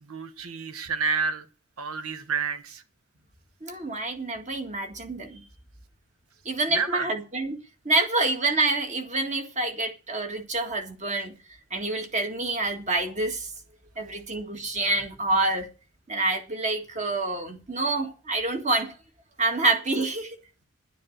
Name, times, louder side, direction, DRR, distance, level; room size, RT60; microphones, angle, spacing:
voice 1, 0.0-1.4 1.8-2.8 6.7-7.1, right 5 dB, 75° right, 1.4 m, -29 dB
voice 2, 3.6-5.4 6.5-7.6 7.9-11.3 11.7-13.5 14.0-15.7 16.1-18.9 19.4-20.4, right 2 dB, 30° right, 1.8 m, -27 dB
10.5 x 9.8 x 6.5 m
head